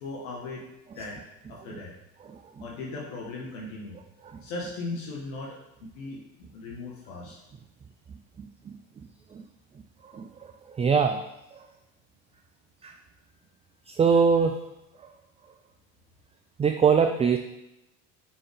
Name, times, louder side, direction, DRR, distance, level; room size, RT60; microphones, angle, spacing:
voice 1, 0.0-0.6 1.0-1.2 1.5-1.9 2.6-4.0 4.4-5.6 5.9-6.2 6.5-7.4 14.1-14.2, left 3 dB, 75° left, -3 dB, 1.3 m, -37 dB
voice 2, 10.8-11.2 12.8-12.9 13.9-14.6 16.6-17.4, right 6 dB, 15° right, 5 dB, 0.3 m, -22 dB
5.6 x 5.4 x 3.4 m, 0.90 s
hypercardioid pair, 70°, 40 cm